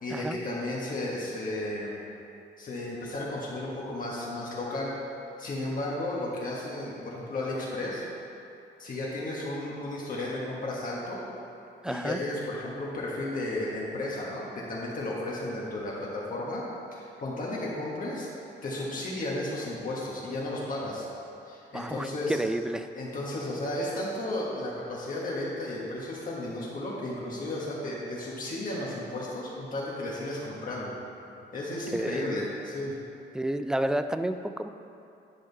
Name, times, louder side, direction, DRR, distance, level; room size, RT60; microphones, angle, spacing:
voice 1, 0.0-2.0 2.6-4.9 5.4-8.0 8.8-11.2 11.8-16.6 16.9-18.3 18.6-21.1 21.5-22.4 22.9-31.0 31.5-32.9, left 1 dB, 45° left, -6 dB, 1.5 m, -33 dB
voice 2, 11.8-12.2 21.7-22.9 31.9-32.3 33.3-34.7, right 1 dB, 5° right, 9 dB, 0.3 m, -30 dB
10.0 x 5.0 x 4.1 m, 2.7 s
cardioid pair, 90°, 20 cm